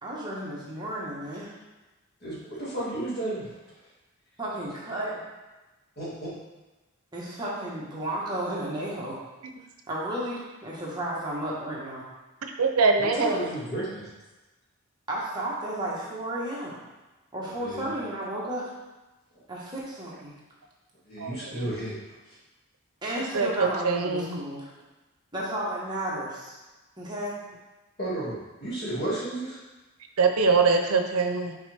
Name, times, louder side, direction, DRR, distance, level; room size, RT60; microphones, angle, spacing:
voice 1, 0.0-1.6 4.4-5.2 7.1-9.2 9.9-12.0 13.1-13.5 15.1-16.7 17.3-18.7 19.5-20.3 23.0-24.7 25.3-26.6 27.0-27.3, right 1 dB, 20° right, -6 dB, 1.3 m, -33 dB
voice 2, 2.2-3.5 6.0-6.3 13.0-14.1 17.6-17.9 21.1-22.0 28.0-29.6, right 1 dB, 45° left, -8 dB, 2.1 m, -33 dB
voice 3, 12.6-13.3 21.2-21.7 23.3-23.5 23.8-24.4 30.2-31.5, right 4 dB, 85° right, 5 dB, 0.6 m, -23 dB
5.9 x 4.8 x 3.4 m, 1.1 s
head